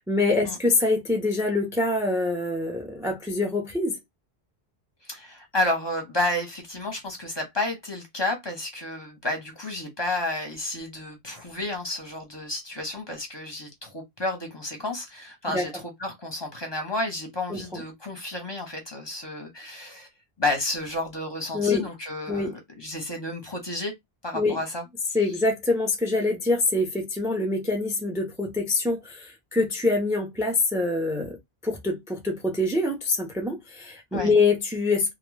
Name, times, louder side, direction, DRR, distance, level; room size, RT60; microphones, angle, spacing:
voice 1, 0.0-3.9 15.5-15.7 17.5-17.8 21.5-21.9 22.3-22.6 24.3-24.6 25.1-31.4 31.6-35.1, left 3 dB, 5° right, 0.3 m, -25 dB
voice 2, 5.0-20.1 20.4-23.9 24.2-24.8 34.1-34.3, left 2 dB, 30° left, 0.6 m, -31 dB
2.1 x 2.0 x 3.1 m
omnidirectional pair, 1.0 m